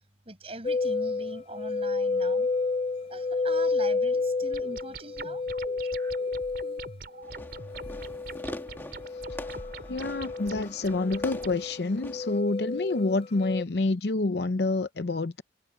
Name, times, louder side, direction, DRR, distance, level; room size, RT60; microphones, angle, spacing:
voice 1, 0.3-2.5 3.1-5.5, right 2 dB, 35° right, 6.9 m, -42 dB
sound 1, 0.6-13.6, left 3 dB, 30° left, 0.4 m, -31 dB
sound 2, 4.5-11.6, right 3 dB, 60° right, 4.9 m, -44 dB
Fireworks, 7.2-12.4, left 1 dB, 10° left, 2.0 m, -43 dB
voice 2, 9.9-15.4, left 3 dB, 70° left, 0.7 m, -28 dB
head